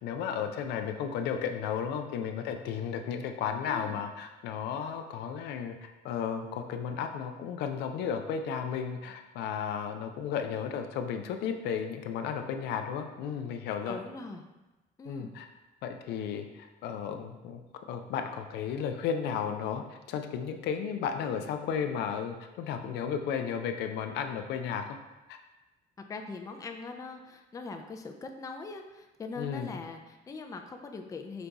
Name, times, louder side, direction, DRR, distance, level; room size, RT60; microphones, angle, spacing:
voice 1, 0.0-5.7 6.0-14.0 15.1-15.5 15.8-17.6 17.9-24.9 25.3-25.4 29.4-29.8, left 7 dB, 80° left, 6 dB, 0.4 m, -34 dB
voice 2, 3.6-4.0 13.9-14.4 15.0-15.3 26.1-31.5, left 3 dB, 20° left, 4 dB, 0.4 m, -41 dB
5.0 x 2.3 x 3.9 m, 1.1 s
cardioid pair, 110°, 17 cm